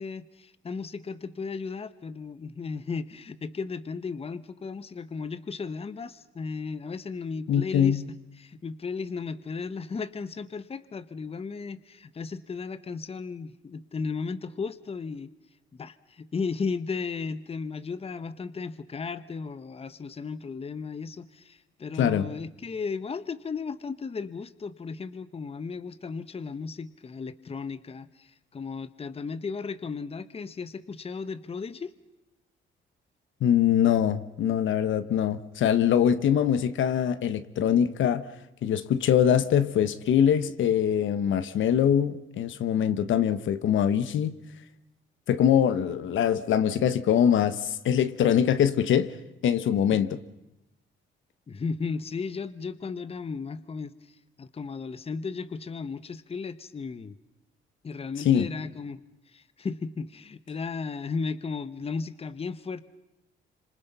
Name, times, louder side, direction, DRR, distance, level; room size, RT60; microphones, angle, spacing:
voice 1, 0.0-15.3 15.7-31.9 51.5-57.2 57.8-59.0 59.3-62.8, left 5 dB, 30° left, 1.0 m, -35 dB
voice 2, 7.5-8.0 22.0-22.2 33.4-38.3 38.6-44.3 45.3-49.1 49.4-50.1 58.2-58.5, left 9 dB, 70° left, 1.3 m, -23 dB
27.0 x 26.5 x 5.5 m
cardioid pair, 100°, 20 cm